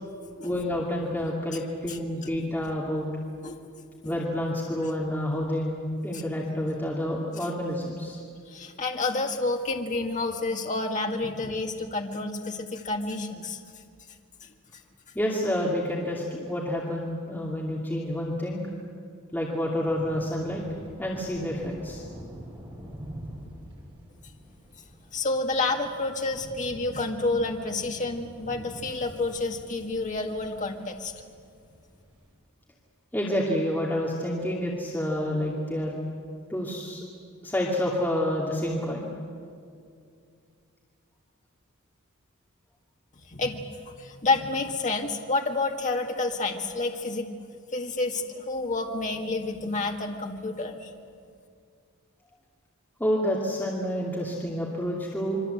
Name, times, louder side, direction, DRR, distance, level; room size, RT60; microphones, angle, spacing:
voice 1, 0.4-3.1 4.0-5.8 6.0-8.2 15.1-18.6 19.3-20.6 21.0-22.0 33.1-36.0 36.5-37.0 37.4-39.1 53.0-55.4, equal, 10° left, -4 dB, 2.5 m, -29 dB
voice 2, 3.4-4.1 8.5-13.6 25.1-31.1 43.3-43.6 44.0-47.3 47.7-50.9, left 3 dB, 35° left, 2 dB, 1.9 m, -29 dB
sound 1, 19.9-32.3, equal, 20° right, 5.4 m, -45 dB
27.0 x 24.0 x 8.0 m, 2.3 s
head